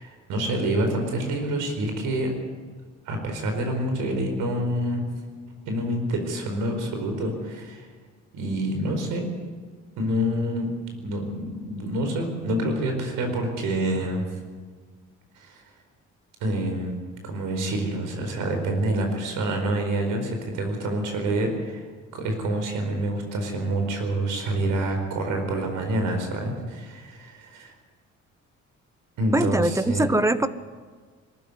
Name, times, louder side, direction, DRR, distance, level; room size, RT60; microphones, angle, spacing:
voice 1, 0.0-2.3 3.0-5.1 5.7-7.9 8.3-9.3 10.0-10.7 11.0-14.4 15.3-15.6 16.4-21.8 22.1-27.7 29.2-30.1, right 1 dB, 90° right, 4 dB, 4.7 m, -27 dB
voice 2, 29.3-30.5, right 1 dB, 10° right, 13 dB, 1.1 m, -22 dB
22.0 x 14.0 x 9.8 m, 1.5 s
cardioid pair, 90°, 30 cm